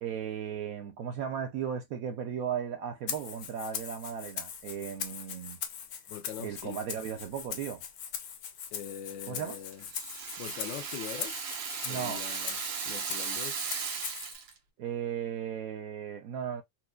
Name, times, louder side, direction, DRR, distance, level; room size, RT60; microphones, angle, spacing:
voice 1, 0.0-5.6 6.4-7.8 9.3-9.6 11.8-12.2 14.8-16.6, right 8 dB, 75° right, 0.8 m, -36 dB
Rattle (instrument), 3.1-14.3, left 8 dB, 65° left, 1.1 m, -41 dB
voice 2, 6.1-6.8 8.7-9.9 10.4-11.4 11.9-12.6 12.9-13.6, left 9 dB, 80° left, 1.3 m, -42 dB
Rattle (instrument) 2, 9.5-14.6, right 6 dB, 90° right, 1.6 m, -37 dB
4.4 x 2.2 x 2.3 m
omnidirectional pair, 2.0 m